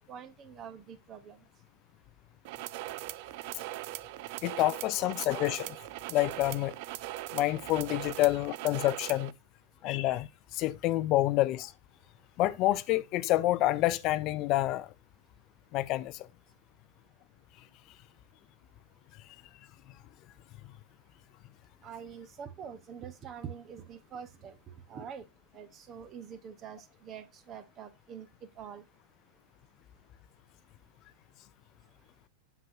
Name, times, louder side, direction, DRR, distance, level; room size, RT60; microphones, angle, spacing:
voice 1, 0.1-1.4 21.8-25.2 25.5-28.3 28.6-28.8, right 7 dB, 35° right, 1.1 m, -45 dB
sound 1, 2.4-9.3, right 16 dB, 55° right, 0.4 m, -40 dB
voice 2, 4.4-5.8 6.1-6.7 7.3-9.3 9.8-11.7 12.4-14.9 15.7-16.2, left 16 dB, 45° left, 0.5 m, -28 dB
7.6 x 5.9 x 2.8 m
hypercardioid pair, 110°, 0 cm